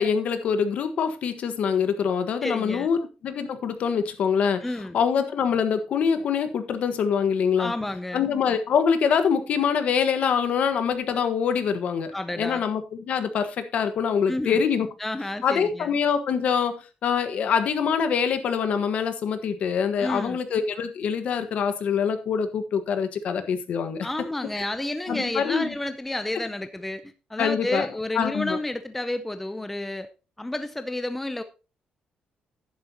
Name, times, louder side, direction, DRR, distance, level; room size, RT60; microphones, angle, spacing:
voice 1, 0.0-7.7 8.1-14.9 15.4-16.8 17.0-24.1 24.6-24.7 25.1-25.7 27.4-27.9 28.1-28.6, left 7 dB, 55° left, 9 dB, 1.4 m, -25 dB
voice 2, 2.4-2.9 4.6-4.9 7.6-8.2 12.1-12.7 14.3-14.6 15.0-15.9 20.0-20.4 24.0-27.0 27.3-30.1 30.4-31.4, left 1 dB, 5° left, 10 dB, 0.6 m, -30 dB
11.0 x 10.5 x 2.9 m, 0.31 s
cardioid pair, 175°, 3 cm